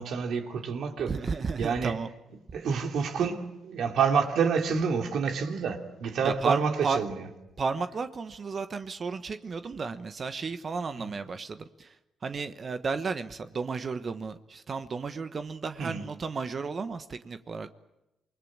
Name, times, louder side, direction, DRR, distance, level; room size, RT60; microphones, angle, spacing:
voice 1, 0.0-1.1 1.6-2.0 2.5-7.2 11.0-11.1 15.8-16.1, right 6 dB, 70° right, 3.1 m, -28 dB
voice 2, 1.1-2.1 6.2-7.0 7.6-12.0 12.2-17.7, right 4 dB, 45° right, 1.2 m, -33 dB
28.0 x 20.5 x 8.9 m
supercardioid pair, 65°, 0 cm